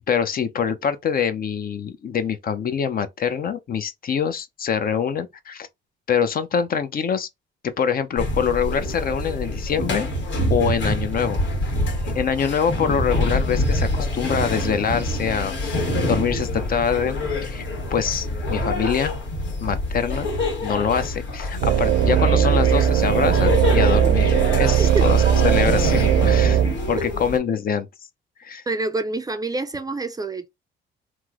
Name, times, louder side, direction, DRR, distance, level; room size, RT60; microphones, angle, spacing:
voice 1, 0.1-5.7 6.1-7.3 7.8-10.1 10.5-11.4 12.1-15.8 16.1-19.1 19.6-20.3 20.6-26.6 26.9-27.9 28.4-28.6, left 7 dB, 45° left, 0.5 m, -24 dB
sound 1, 8.2-27.4, left 1 dB, 70° left, 1.3 m, -26 dB
sound 2, 21.6-26.7, right 10 dB, 90° right, 0.6 m, -18 dB
voice 2, 24.8-25.1 28.7-30.5, right 3 dB, 20° right, 0.4 m, -27 dB
3.0 x 2.0 x 3.5 m
cardioid pair, 90°, 20 cm